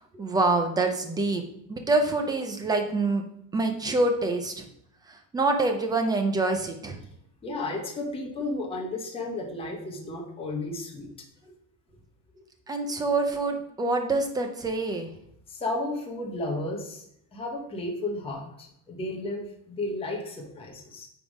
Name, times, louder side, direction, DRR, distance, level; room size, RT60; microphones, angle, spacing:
voice 1, 0.1-1.4 1.7-3.2 3.5-4.6 5.1-7.0 12.7-15.1, right 2 dB, 10° right, 5 dB, 0.4 m, -26 dB
voice 2, 7.4-11.1 15.5-17.0 17.3-21.1, left 2 dB, 15° left, 0 dB, 1.0 m, -33 dB
9.3 x 3.6 x 4.8 m, 0.73 s
cardioid pair, 175°, 42 cm